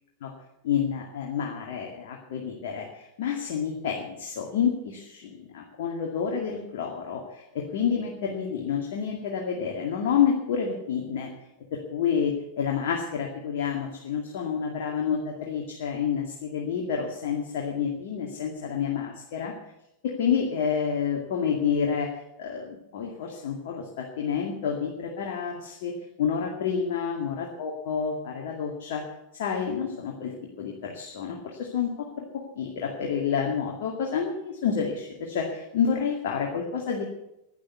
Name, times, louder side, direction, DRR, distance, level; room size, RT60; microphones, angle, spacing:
voice 1, 0.6-11.3 11.7-19.5 20.0-22.1 22.4-25.9 26.2-29.0 29.3-32.2 32.6-37.0, left 7 dB, 55° left, 0 dB, 2.2 m, -29 dB
11.5 x 11.0 x 8.3 m, 0.86 s
figure-of-eight pair, 90°, 0 cm